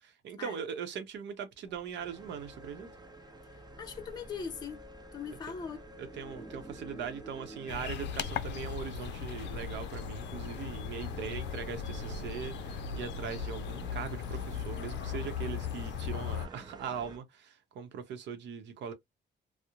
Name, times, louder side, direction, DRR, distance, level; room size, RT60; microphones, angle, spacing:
voice 1, 0.0-2.9 6.0-18.9, right 7 dB, 75° right, 0.7 m, -40 dB
sound 1, 1.6-7.8, equal, 5° left, 0.9 m, -52 dB
sound 2, 2.0-17.2, right 2 dB, 20° right, 0.5 m, -51 dB
voice 2, 3.4-4.9 5.1-5.9, left 6 dB, 20° left, 0.6 m, -41 dB
sound 3, 7.7-16.5, left 7 dB, 75° left, 0.4 m, -38 dB
2.9 x 2.0 x 2.3 m
cardioid pair, 120°, 19 cm